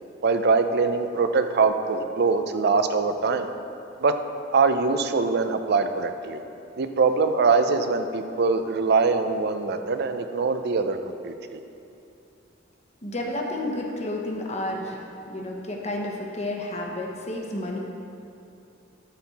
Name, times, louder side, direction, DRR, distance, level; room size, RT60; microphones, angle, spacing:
voice 1, 0.2-3.5 4.0-4.2 4.5-6.4 6.8-11.0 11.2-11.6, right 4 dB, 55° right, 8 dB, 0.5 m, -23 dB
voice 2, 13.0-17.8, left 1 dB, 35° left, 0 dB, 1.0 m, -31 dB
12.0 x 4.4 x 4.1 m, 2.7 s
head